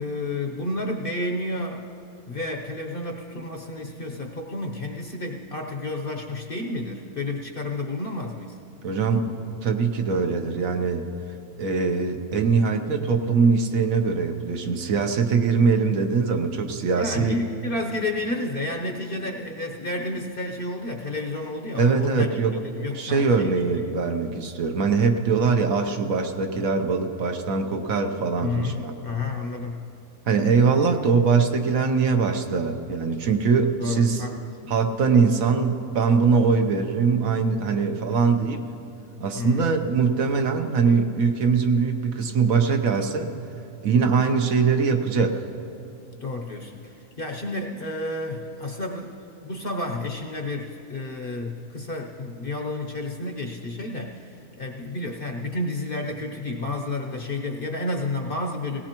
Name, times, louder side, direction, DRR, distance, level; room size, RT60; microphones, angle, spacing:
voice 1, 0.0-1.8 2.3-8.6 16.9-22.3 22.6-24.0 28.4-29.8 33.8-34.4 34.6-34.7 39.3-39.7 46.2-49.2 49.4-58.8, left 2 dB, 45° left, 2 dB, 0.8 m, -31 dB
voice 2, 8.8-11.0 11.6-17.4 21.8-22.5 22.9-28.9 30.3-34.2 34.7-38.7 39.2-43.3 43.8-45.5, right 5 dB, 65° right, 5 dB, 1.2 m, -22 dB
18.0 x 17.5 x 2.9 m, 2.7 s
omnidirectional pair, 1.6 m